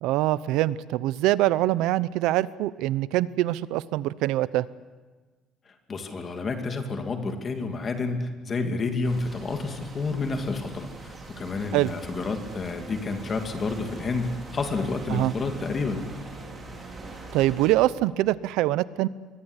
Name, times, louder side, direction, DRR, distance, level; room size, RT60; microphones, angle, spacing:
voice 1, 0.0-4.7 11.7-11.9 15.1-15.3 17.3-19.1, right 15 dB, 80° right, 17 dB, 0.7 m, -24 dB
voice 2, 5.9-16.0, left 3 dB, 25° left, 5 dB, 2.5 m, -30 dB
sound 1, 9.0-17.7, right 2 dB, 15° right, 4.3 m, -42 dB
28.0 x 23.0 x 8.2 m, 1.3 s
cardioid pair, 175°, 0 cm